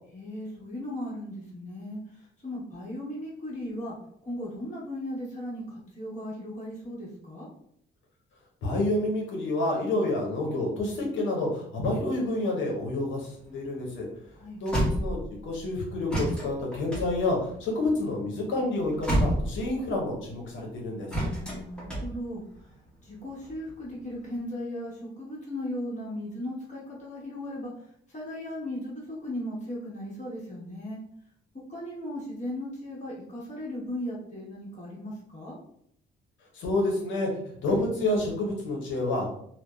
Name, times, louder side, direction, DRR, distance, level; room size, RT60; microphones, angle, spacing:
voice 1, 0.1-3.9 4.2-7.5 14.3-14.6 21.3-22.4 23.0-27.7 28.1-31.0 31.7-35.6, left 1 dB, 35° left, -5 dB, 1.2 m, -37 dB
voice 2, 8.6-14.1 14.6-21.1 36.5-39.3, left 2 dB, 75° left, 0 dB, 0.8 m, -29 dB
sound 1, 13.2-15.6 16.1-20.0 21.1-22.7 23.3-24.3, equal, 5° left, 0.9 m, -30 dB
2.6 x 2.1 x 2.3 m, 0.68 s
cardioid pair, 90°, 20 cm